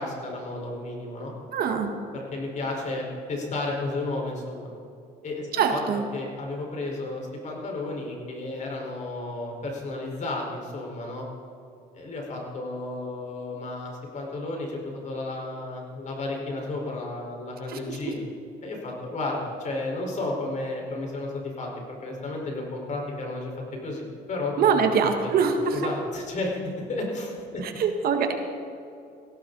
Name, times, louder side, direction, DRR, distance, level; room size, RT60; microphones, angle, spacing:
voice 1, 0.0-1.3 2.1-4.7 5.2-5.8 6.1-11.2 11.9-18.2 18.6-23.5 23.8-26.6 26.9-27.9, left 2 dB, 45° left, -1 dB, 4.8 m, -33 dB
voice 2, 1.5-1.9 5.6-6.0 17.7-18.0 24.6-25.8 27.6-28.3, right 6 dB, 65° right, 5 dB, 1.8 m, -23 dB
17.5 x 16.5 x 4.1 m, 2.6 s
cardioid pair, 110°, 17 cm